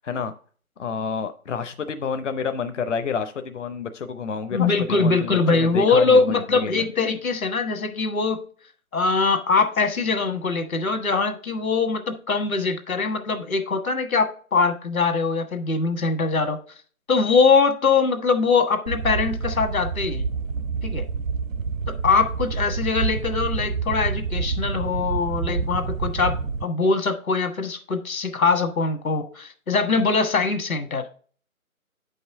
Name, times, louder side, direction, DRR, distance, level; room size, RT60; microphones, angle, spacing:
voice 1, 0.8-6.9, left 5 dB, 55° left, 0.7 m, -29 dB
voice 2, 4.5-8.4 8.9-16.6 17.1-20.3 20.8-21.1 21.9-26.4 26.6-31.1, left 4 dB, 70° left, 1.4 m, -22 dB
sound 1, 18.9-26.6, right 5 dB, 65° right, 0.7 m, -28 dB
8.2 x 5.4 x 3.5 m
hypercardioid pair, 170°, 43 cm